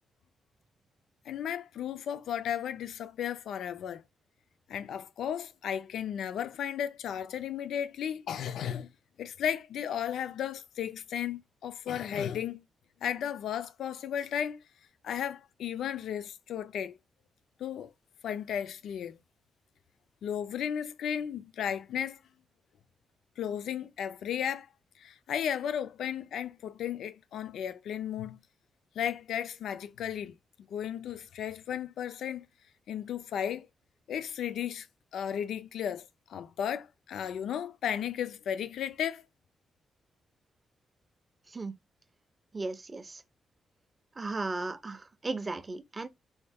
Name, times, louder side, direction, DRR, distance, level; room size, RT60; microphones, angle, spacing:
voice 1, 1.3-4.0 4.7-8.9 9.2-12.6 13.0-14.6 15.0-17.0 17.6-17.9 18.2-19.2 20.2-22.2 23.4-24.7 25.0-28.4 29.0-30.3 30.7-32.5 32.9-33.7 34.1-34.9 35.1-39.2, left 9 dB, 80° left, 0.4 m, -34 dB
voice 2, 42.5-43.2 44.2-46.1, right 3 dB, 20° right, 0.4 m, -36 dB
4.2 x 2.3 x 3.3 m
wide cardioid pair, 160°, 0 cm